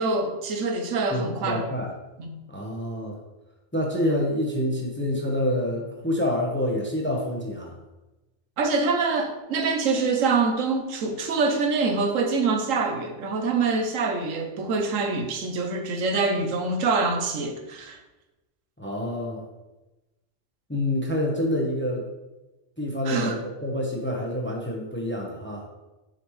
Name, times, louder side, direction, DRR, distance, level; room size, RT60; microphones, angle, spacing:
voice 1, 0.0-1.6 2.2-2.4 8.6-18.0 23.0-23.4, right 4 dB, 85° right, 5 dB, 1.2 m, -25 dB
voice 2, 1.1-1.9 2.5-3.2 3.7-7.8 18.8-19.4 20.7-22.0 22.8-25.7, left 1 dB, 10° left, -1 dB, 0.8 m, -27 dB
6.5 x 5.2 x 3.2 m, 1.0 s
omnidirectional pair, 1.3 m